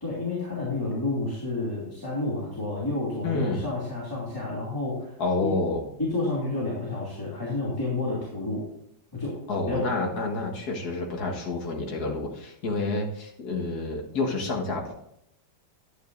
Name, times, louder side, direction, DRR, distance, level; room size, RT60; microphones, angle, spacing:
voice 1, 0.0-5.1 5.4-5.5 6.0-8.6 9.1-9.4 9.6-9.9, left 2 dB, 10° left, -7 dB, 2.7 m, -30 dB
voice 2, 3.2-3.6 5.2-5.8 9.5-14.9, left 3 dB, 55° left, -1 dB, 2.1 m, -29 dB
12.5 x 9.1 x 2.6 m, 0.79 s
omnidirectional pair, 2.0 m